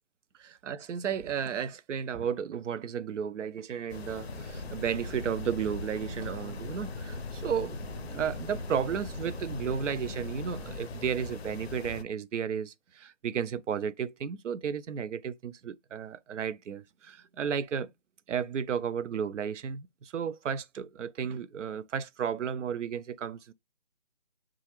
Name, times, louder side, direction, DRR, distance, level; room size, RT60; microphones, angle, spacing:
voice 1, 0.4-17.9 18.3-23.5, right 7 dB, 80° right, 0.5 m, -33 dB
sound 1, 3.9-12.0, left 4 dB, 60° left, 0.5 m, -41 dB
sound 2, 4.3-10.7, equal, 30° right, 0.5 m, -42 dB
5.6 x 2.4 x 2.9 m
hypercardioid pair, 170°, 36 cm